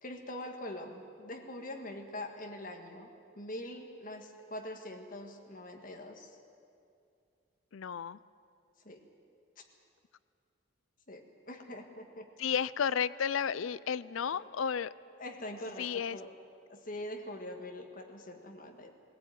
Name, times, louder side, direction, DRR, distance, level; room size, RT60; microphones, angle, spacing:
voice 1, 0.0-3.1 3.4-6.4 8.9-9.0 11.1-12.3 14.3-14.5 15.2-16.3 16.7-18.9, left 1 dB, 40° left, 2 dB, 1.8 m, -43 dB
voice 2, 7.7-8.2 12.4-14.9 15.8-16.2, left 7 dB, 75° left, 18 dB, 0.4 m, -32 dB
19.0 x 17.0 x 9.3 m, 2.5 s
head